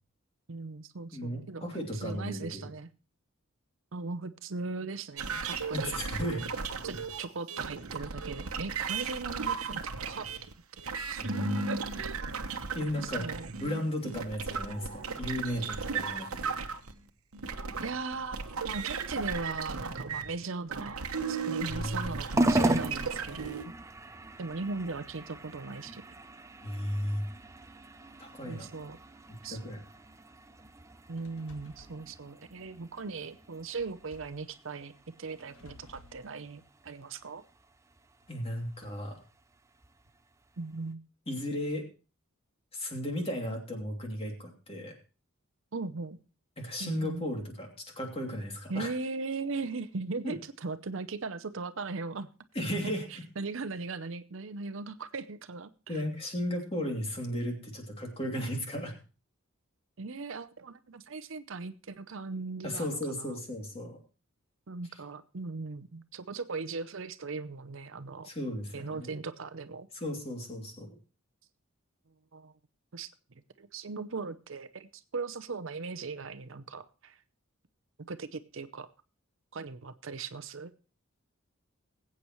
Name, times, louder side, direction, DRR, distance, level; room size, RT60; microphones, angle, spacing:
voice 1, 0.5-2.9 3.9-6.0 6.8-10.2 11.1-12.2 13.0-13.5 17.8-18.4 18.6-23.7 24.4-26.0 28.4-29.0 29.4-29.6 31.1-34.9 35.2-37.4 40.6-41.0 45.7-46.2 46.8-47.3 48.7-52.3 52.8-56.0 60.0-63.3 64.7-68.3 68.7-69.9 72.3-72.5 72.9-73.1 73.6-77.2 78.1-78.9 79.5-80.7, right 4 dB, 65° right, 12 dB, 0.7 m, -38 dB
voice 2, 1.1-2.7 5.7-6.4 11.2-11.6 12.7-13.3 13.6-16.5 21.6-22.2 26.6-27.3 28.2-28.7 29.5-29.8 38.3-39.2 41.3-41.9 42.7-45.0 46.6-48.9 50.2-50.3 52.5-53.2 55.9-58.9 62.6-64.0 68.2-69.1 69.9-70.9, left 1 dB, 25° left, 1 dB, 2.8 m, -35 dB
sound 1, 5.2-20.3 20.7-23.6, right 5 dB, 85° right, 1.1 m, -35 dB
sound 2, 22.3-40.9, right 1 dB, 15° right, 0.5 m, -38 dB
sound 3, 31.2-32.0 33.8-34.5 35.4-36.2, left 2 dB, 75° left, 1.4 m, -55 dB
20.5 x 8.5 x 3.1 m, 0.34 s
head